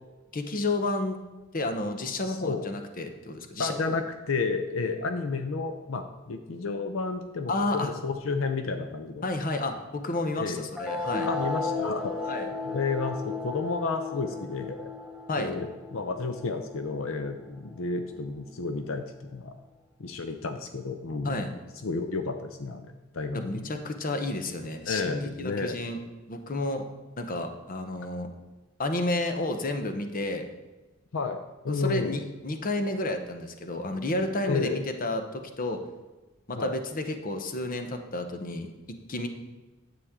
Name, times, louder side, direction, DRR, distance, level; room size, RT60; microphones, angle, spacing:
voice 1, 0.3-1.2 1.5-4.0 7.5-7.9 9.2-11.3 12.3-12.5 15.3-15.5 21.2-21.5 23.3-26.0 26.3-26.8 27.2-28.3 28.8-30.4 31.7-35.8 36.5-39.3, left 2 dB, 45° left, 6 dB, 0.8 m, -31 dB
voice 2, 2.3-2.7 3.6-9.2 10.4-10.7 11.3-12.1 12.6-14.9 15.4-19.5 20.0-21.4 21.8-23.7 24.9-25.8 31.1-32.2 34.5-34.8 36.5-36.7, left 4 dB, 75° left, 7 dB, 0.6 m, -31 dB
sound 1, 10.8-17.7, left 3 dB, 5° right, 0.9 m, -35 dB
9.9 x 8.0 x 3.7 m, 1.1 s
head